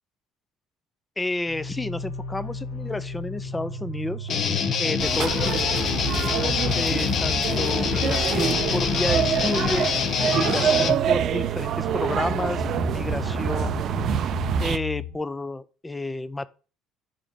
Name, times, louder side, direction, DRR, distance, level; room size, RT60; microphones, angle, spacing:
voice 1, 1.2-4.3 4.8-5.6 6.1-12.6 12.9-14.1 14.6-16.5, left 2 dB, 10° left, 0.4 m, -31 dB
sound 1, 1.5-15.1, left 4 dB, 80° left, 4.0 m, -35 dB
Guitar, 4.3-11.0, left 7 dB, 45° left, 0.7 m, -25 dB
sound 2, 5.0-14.8, right 9 dB, 50° right, 0.4 m, -26 dB
5.1 x 5.0 x 5.6 m
cardioid pair, 120°, 0 cm